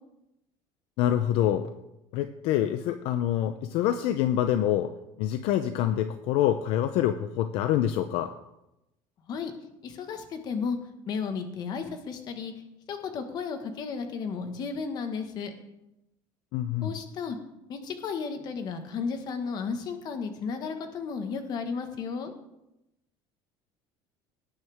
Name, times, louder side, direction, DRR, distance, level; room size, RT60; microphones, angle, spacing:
voice 1, 1.0-1.7 2.1-4.9 5.2-8.3 16.5-16.9, left 11 dB, 65° left, 9 dB, 0.7 m, -26 dB
voice 2, 9.8-10.8 11.0-12.5 12.9-15.5 16.8-17.4 17.7-22.3, left 5 dB, 40° left, 7 dB, 1.5 m, -33 dB
18.0 x 9.6 x 3.6 m, 0.91 s
cardioid pair, 155°, 11 cm